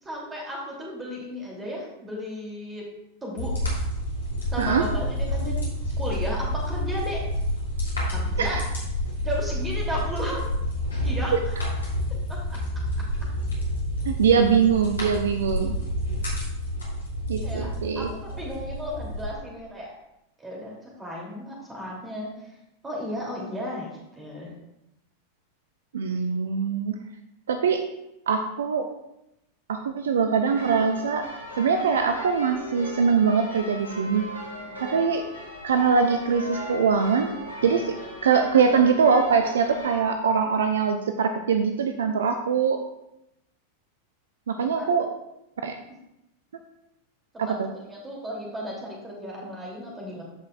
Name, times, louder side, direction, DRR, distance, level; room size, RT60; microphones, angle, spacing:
voice 1, 0.0-2.9 3.2-3.5 4.5-5.6 6.0-7.2 8.1-8.6 9.2-10.5 11.0-11.3 12.3-12.6 17.4-19.9 20.4-22.6 22.8-23.9 24.2-24.5 34.6-35.1 44.8-44.9 47.5-47.6 47.8-50.2, equal, 15° right, -3 dB, 2.8 m, -34 dB
sound 1, 3.4-19.3, equal, 70° left, 2.9 m, -29 dB
voice 2, 14.0-15.7 17.3-18.1 25.9-27.0 27.5-27.8 28.3-28.9 29.7-31.3 31.6-34.3 34.8-35.2 35.6-37.3 37.6-38.0 38.2-42.8 44.5-45.1 45.6-45.7 47.4-47.7, right 6 dB, 65° right, 6 dB, 0.5 m, -22 dB
sound 2, 30.4-40.0, left 1 dB, 90° right, 2.5 m, -38 dB
14.0 x 5.4 x 2.4 m, 0.86 s
figure-of-eight pair, 90°, 0 cm